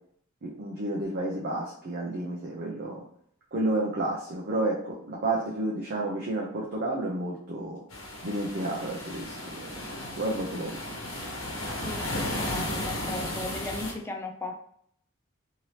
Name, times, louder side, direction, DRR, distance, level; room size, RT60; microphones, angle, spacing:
voice 1, 0.4-3.0 3.5-7.8 8.2-9.7 10.2-10.8, right 2 dB, 50° right, -3 dB, 0.6 m, -31 dB
sound 1, 7.9-13.9, left 1 dB, 75° left, 0.9 m, -34 dB
voice 2, 11.7-14.6, left 2 dB, 10° left, 2 dB, 0.4 m, -37 dB
3.2 x 2.8 x 2.8 m, 0.65 s
head